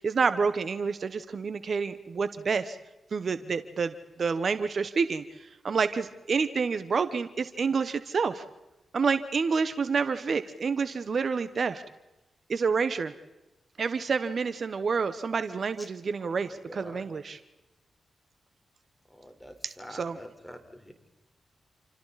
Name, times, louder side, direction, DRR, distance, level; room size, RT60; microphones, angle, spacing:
voice 1, 0.0-2.8 3.1-5.2 5.6-8.4 8.9-11.8 12.5-13.1 13.8-17.4 19.6-20.2, right 5 dB, 60° right, 11 dB, 1.1 m, -28 dB
voice 2, 16.2-17.1 19.1-20.9, equal, 10° left, 5 dB, 4.4 m, -46 dB
28.5 x 28.0 x 4.2 m, 0.99 s
cardioid pair, 55°, 0 cm